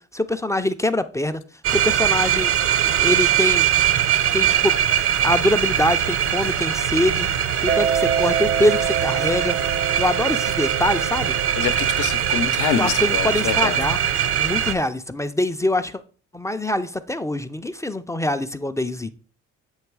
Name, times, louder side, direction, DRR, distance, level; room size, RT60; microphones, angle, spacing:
voice 1, 0.1-1.4 1.7-2.5 2.8-3.7 4.3-4.8 5.2-7.3 7.6-9.6 10.0-11.3 12.8-14.1 14.4-16.0 16.3-19.1, left 1 dB, 10° left, 0.3 m, -24 dB
sound 1, 1.6-14.7, right 9 dB, 45° right, 0.5 m, -21 dB
Mallet percussion, 7.7-14.0, right 8 dB, 80° right, 1.0 m, -28 dB
voice 2, 11.6-13.9, left 9 dB, 80° left, 0.7 m, -26 dB
8.0 x 3.0 x 4.6 m
cardioid pair, 90°, 30 cm